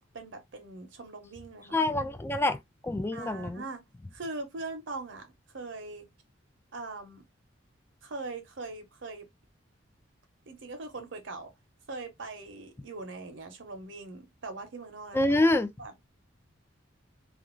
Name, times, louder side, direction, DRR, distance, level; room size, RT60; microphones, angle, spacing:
voice 1, 0.0-1.8 3.1-3.8 4.1-5.3 5.5-6.1 6.7-7.2 8.0-9.3 10.5-11.5 11.9-15.4 15.8-16.0, right 3 dB, 70° right, 0.8 m, -41 dB
voice 2, 1.7-3.6 15.1-15.7, left 2 dB, 10° left, 0.3 m, -26 dB
2.5 x 2.3 x 3.0 m
head